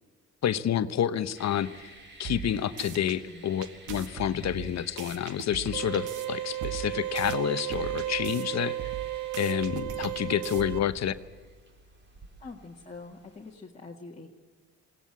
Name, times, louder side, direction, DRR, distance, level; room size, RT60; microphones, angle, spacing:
voice 1, 0.4-8.8 9.3-11.1, left 10 dB, 60° left, 12 dB, 1.0 m, -29 dB
sound 1, 1.3-13.5, right 2 dB, 35° right, 4.0 m, -51 dB
sound 2, 2.2-3.2 3.6-6.3 6.6-8.4 8.8-10.9, right 9 dB, 85° right, 1.8 m, -40 dB
sound 3, 5.7-10.8, right 15 dB, 65° right, 0.6 m, -34 dB
voice 2, 12.4-14.3, left 3 dB, 25° left, -2 dB, 1.9 m, -45 dB
21.0 x 17.5 x 8.5 m, 1.4 s
cardioid pair, 90°, 30 cm